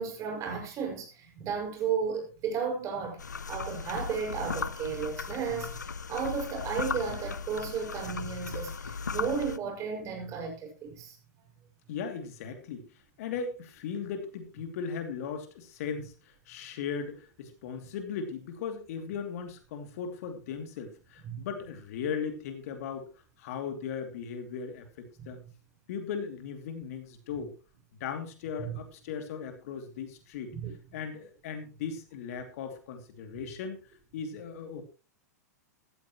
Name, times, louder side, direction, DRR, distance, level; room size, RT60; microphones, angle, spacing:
voice 1, 0.0-3.2 3.5-11.2 21.2-21.4 25.2-25.3 28.6-28.8 30.5-30.7, right 6 dB, 35° right, 6.0 m, -34 dB
sound 1, 3.2-9.6, left 5 dB, 85° left, 0.6 m, -37 dB
voice 2, 11.9-12.9 13.2-23.1 23.4-25.4 25.9-27.5 28.0-30.5 30.9-33.8 34.1-34.8, left 6 dB, 60° left, 2.8 m, -37 dB
15.0 x 14.0 x 3.1 m
hypercardioid pair, 105°, 9 cm